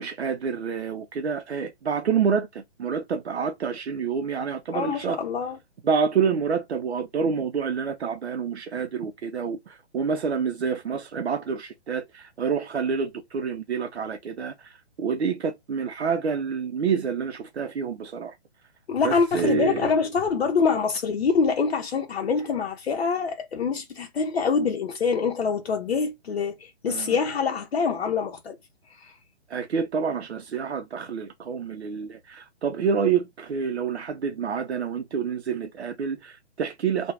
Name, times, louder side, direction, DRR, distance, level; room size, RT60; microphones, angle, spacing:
voice 1, 0.0-5.2 5.8-18.4 19.0-19.9 26.9-27.2 29.5-37.1, right 6 dB, 75° right, 0.5 m, -28 dB
voice 2, 4.7-5.6 18.9-28.6 28.9-29.2, left 5 dB, 65° left, 0.6 m, -25 dB
2.9 x 2.2 x 2.4 m
figure-of-eight pair, 135°, 33 cm